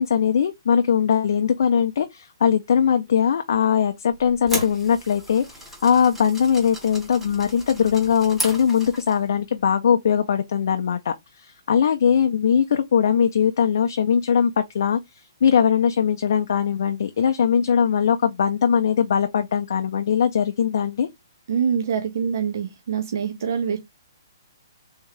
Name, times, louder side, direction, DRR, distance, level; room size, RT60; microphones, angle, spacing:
voice 1, 0.0-21.1, left 7 dB, 50° left, 0.4 m, -20 dB
sound 1, 4.1-9.3, equal, 5° right, 0.7 m, -35 dB
voice 2, 21.5-23.8, right 7 dB, 50° right, 0.5 m, -25 dB
3.5 x 2.8 x 3.1 m
hypercardioid pair, 175°, 2 cm